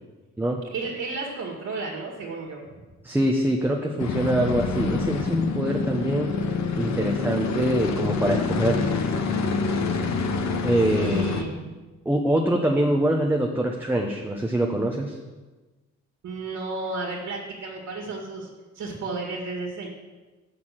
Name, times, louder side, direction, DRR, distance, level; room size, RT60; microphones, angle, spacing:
voice 1, 0.6-2.8 10.8-11.8 16.2-18.5 18.7-19.9, right 3 dB, 70° right, -2 dB, 1.9 m, -33 dB
voice 2, 3.0-6.3 6.8-8.9 10.6-11.3 12.0-15.1, right 1 dB, 5° right, 0 dB, 0.9 m, -24 dB
sound 1, 4.0-11.4, left 4 dB, 65° left, 1.0 m, -26 dB
6.8 x 6.5 x 7.5 m, 1.2 s
cardioid pair, 90°, 30 cm